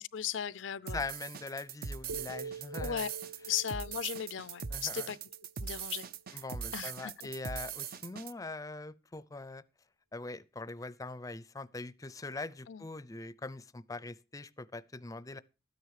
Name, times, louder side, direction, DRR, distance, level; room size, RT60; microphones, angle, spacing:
voice 1, 0.0-1.0 2.8-3.1 3.5-5.2 5.6-6.4 6.7-7.1 12.7-12.8, left 9 dB, 75° left, 0.5 m, -37 dB
voice 2, 0.9-3.1 4.7-5.1 6.3-9.6 10.1-15.4, left 3 dB, 20° left, 0.5 m, -42 dB
sound 1, 0.9-8.3, right 6 dB, 50° right, 0.5 m, -41 dB
sound 2, 2.1-6.2, right 4 dB, 80° right, 1.0 m, -47 dB
13.0 x 9.6 x 4.8 m
head